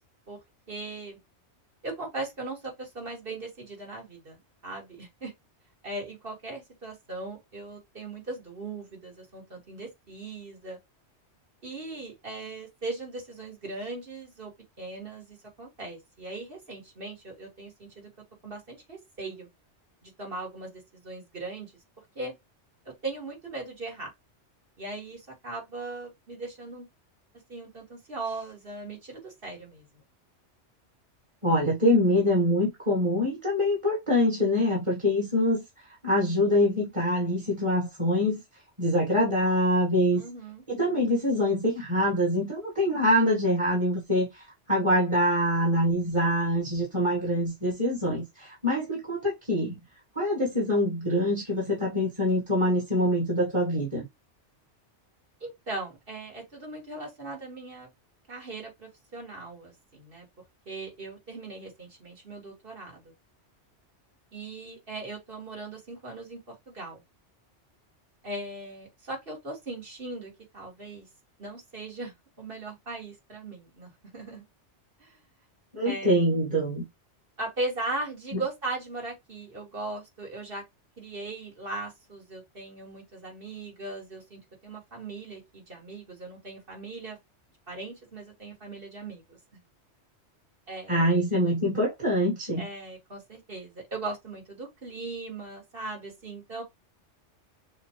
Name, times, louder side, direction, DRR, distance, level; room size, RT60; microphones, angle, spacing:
voice 1, 0.7-1.2 1.8-5.3 5.8-10.8 11.6-14.5 14.8-18.1 18.4-19.5 20.0-21.7 22.2-22.3 22.9-24.1 24.8-26.9 27.5-29.9 40.2-40.6 55.4-57.9 58.3-60.3 60.7-63.1 64.3-67.0 68.2-71.1 71.4-74.4 75.0-75.2 75.9-76.3 77.4-80.6 81.0-87.2 87.7-89.4 90.7-91.1 92.6-96.6, right 2 dB, 50° right, 2.0 m, -39 dB
voice 2, 31.4-35.6 36.0-38.4 38.8-40.2 40.7-49.8 50.1-54.0 75.7-76.8 78.3-78.4 90.9-92.6, equal, 25° right, 1.6 m, -25 dB
6.3 x 2.3 x 3.0 m
omnidirectional pair, 1.2 m